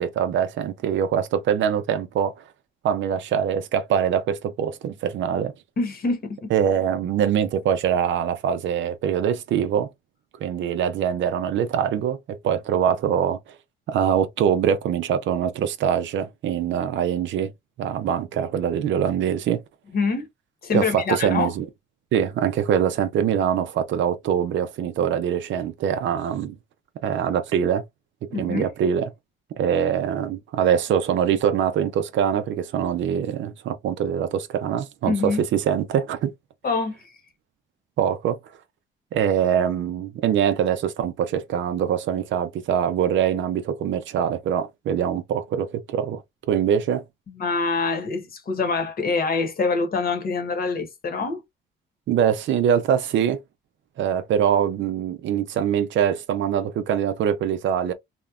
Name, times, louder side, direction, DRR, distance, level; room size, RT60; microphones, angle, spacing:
voice 1, 0.0-2.3 2.8-5.5 6.5-9.9 10.4-13.4 13.9-17.5 17.8-19.6 20.7-21.6 22.1-26.6 27.0-27.8 28.4-29.1 29.6-36.3 38.0-38.4 39.1-46.2 46.5-47.0 52.1-53.4 54.0-57.9, right 8 dB, 70° right, 0.5 m, -23 dB
voice 2, 5.8-6.5 19.9-20.3 20.6-21.5 28.3-28.7 35.1-35.4 36.6-37.0 47.4-51.4, left 4 dB, 50° left, 1.0 m, -25 dB
2.9 x 2.1 x 2.4 m
cardioid pair, 90°, 20 cm